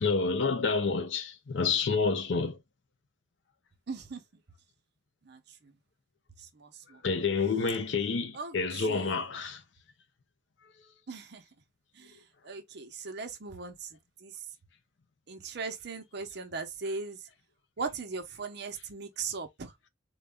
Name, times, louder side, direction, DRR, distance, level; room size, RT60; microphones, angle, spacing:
voice 1, 0.0-2.6 7.0-9.6, left 4 dB, 70° left, 0.6 m, -28 dB
voice 2, 3.9-4.2 5.2-5.7 6.4-7.0 8.3-9.2 11.1-11.4 11.9-14.4 15.3-17.2 17.8-19.7, right 4 dB, 65° right, 0.7 m, -39 dB
3.9 x 2.2 x 3.3 m
head